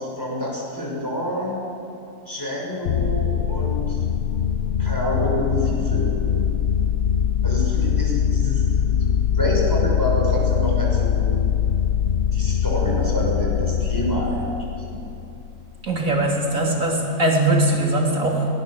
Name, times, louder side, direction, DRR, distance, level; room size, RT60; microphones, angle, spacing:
voice 1, 0.0-1.6 2.3-4.0 4.8-6.6 7.4-9.0 9.3-11.3 12.3-14.5 14.9-15.0, equal, 10° left, -3 dB, 6.6 m, -27 dB
sound 1, 2.8-15.7, left 8 dB, 70° left, 0.5 m, -22 dB
voice 2, 15.8-18.5, right 1 dB, 55° right, -1 dB, 3.8 m, -20 dB
22.0 x 19.5 x 7.6 m, 2.9 s
omnidirectional pair, 1.7 m